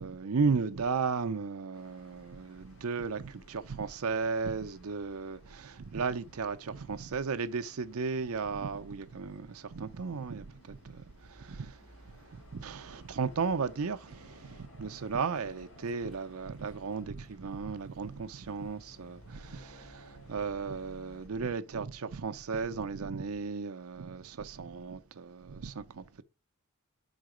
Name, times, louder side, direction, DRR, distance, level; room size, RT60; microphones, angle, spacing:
voice 1, 0.0-11.9 12.3-26.2, right 5 dB, 90° right, 0.6 m, -35 dB
sound 1, 1.7-21.3, equal, 70° left, 2.0 m, -57 dB
5.7 x 4.0 x 5.0 m
head